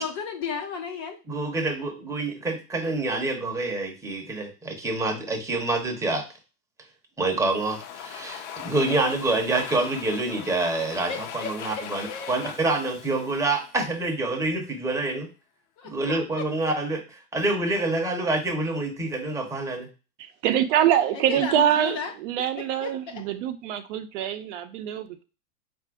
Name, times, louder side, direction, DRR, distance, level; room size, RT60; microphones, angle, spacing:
voice 1, 0.0-1.2 11.1-12.4 15.8-16.4 21.1-22.1 22.6-23.2, left 6 dB, 30° left, 0.4 m, -34 dB
voice 2, 1.3-6.2 7.2-15.3 15.8-17.0 17.3-19.9, right 2 dB, 5° right, 0.8 m, -27 dB
Domestic sounds home sounds, 7.3-14.2, left 9 dB, 55° left, 0.8 m, -40 dB
voice 3, 20.2-25.2, right 10 dB, 55° right, 0.7 m, -25 dB
4.0 x 2.6 x 4.6 m
hypercardioid pair, 130°, 43 cm